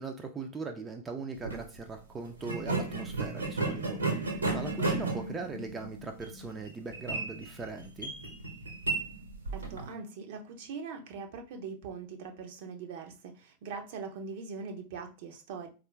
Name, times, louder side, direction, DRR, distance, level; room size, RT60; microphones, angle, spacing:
voice 1, 0.0-8.1, right 4 dB, 15° right, 3 dB, 0.5 m, -40 dB
sound 1, 1.3-1.6 2.4-9.9, right 3 dB, 75° right, 1.2 m, -34 dB
voice 2, 9.5-15.7, right 5 dB, 50° right, 5 dB, 0.7 m, -42 dB
4.3 x 2.5 x 3.2 m, 0.33 s
figure-of-eight pair, 90°, 0 cm